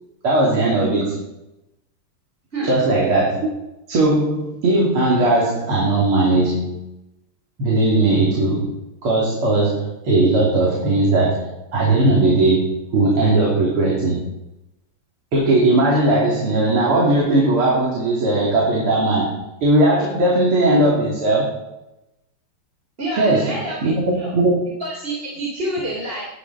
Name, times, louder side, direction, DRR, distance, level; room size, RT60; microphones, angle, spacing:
voice 1, 0.2-1.2 2.6-3.5 3.9-6.8 7.6-8.7 9.0-14.3 15.3-21.6 23.2-24.6, right 2 dB, 75° right, -4 dB, 3.9 m, -18 dB
voice 2, 23.0-24.3 24.8-26.2, right 1 dB, 25° right, -4 dB, 3.2 m, -27 dB
18.5 x 12.0 x 4.2 m, 0.92 s
omnidirectional pair, 2.4 m